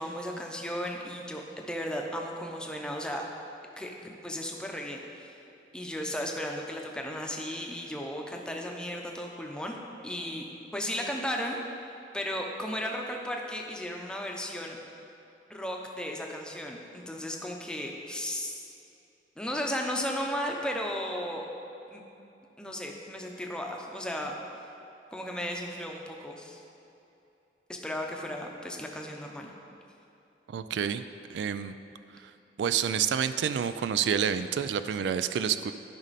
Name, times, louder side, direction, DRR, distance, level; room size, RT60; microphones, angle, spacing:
voice 1, 0.0-3.2 3.8-5.4 5.7-9.8 10.0-10.4 10.7-11.6 12.1-14.8 15.5-18.7 19.4-21.5 21.9-22.0 22.6-24.3 25.1-26.6 27.7-29.5, equal, 5° left, 0 dB, 0.7 m, -35 dB
voice 2, 30.5-31.0 31.3-31.7 32.6-35.7, right 8 dB, 80° right, 12 dB, 0.3 m, -28 dB
12.0 x 5.3 x 4.1 m, 2.8 s
head